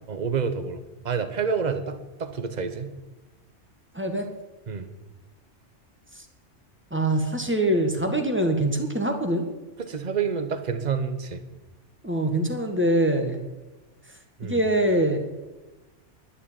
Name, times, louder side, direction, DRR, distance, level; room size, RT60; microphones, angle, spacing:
voice 1, 0.1-2.9 4.7-4.9 9.8-11.4 14.4-14.6, right 6 dB, 40° right, 10 dB, 1.0 m, -28 dB
voice 2, 3.9-4.3 6.9-9.5 12.0-13.4 14.4-15.2, right 1 dB, 10° right, 3 dB, 1.5 m, -24 dB
11.5 x 7.2 x 8.8 m, 1.1 s
omnidirectional pair, 1.2 m